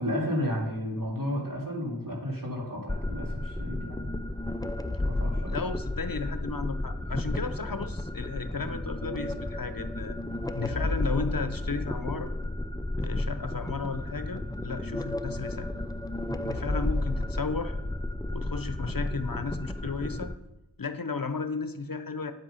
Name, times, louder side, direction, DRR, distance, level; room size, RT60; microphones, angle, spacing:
voice 1, 0.0-4.0 5.0-5.6, equal, 55° right, -2 dB, 3.1 m, -32 dB
sound 1, 2.9-20.3, left 1 dB, 10° left, 0.5 m, -32 dB
voice 2, 5.5-10.2 10.5-12.3 13.0-15.8 16.4-17.7 18.3-20.3 20.8-22.3, left 4 dB, 55° left, 10 dB, 0.8 m, -34 dB
9.1 x 7.9 x 5.6 m, 0.93 s
wide cardioid pair, 45°, 40 cm